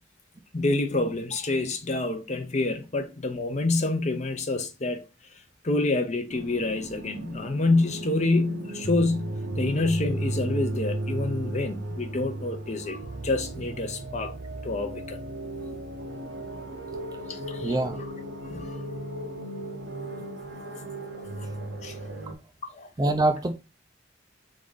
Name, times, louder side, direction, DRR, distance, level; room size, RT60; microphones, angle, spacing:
voice 1, 0.5-5.0 5.6-14.3 14.6-15.2 17.3-18.1 18.4-18.8 21.8-22.0 22.7-22.9, left 2 dB, 35° left, 0.7 m, -27 dB
sound 1, 6.3-22.3, right 1 dB, 70° right, 0.7 m, -35 dB
voice 2, 17.6-18.0 23.0-23.5, right 2 dB, 20° right, 0.3 m, -24 dB
3.7 x 3.7 x 3.8 m
head